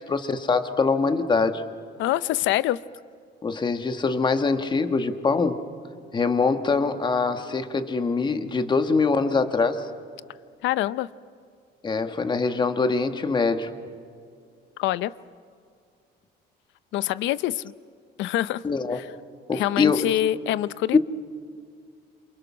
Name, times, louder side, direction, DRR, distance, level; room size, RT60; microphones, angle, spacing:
voice 1, 0.0-1.6 3.4-5.6 6.1-9.9 11.8-13.7 18.6-19.0 19.5-20.1 20.9-21.0, left 4 dB, 25° left, 8 dB, 1.5 m, -23 dB
voice 2, 2.0-2.8 10.6-11.1 14.8-15.1 16.9-17.7 18.2-18.6 19.0-19.1 19.5-21.0, left 14 dB, 80° left, 16 dB, 0.7 m, -25 dB
28.5 x 28.0 x 6.2 m, 2.3 s
cardioid pair, 145°, 19 cm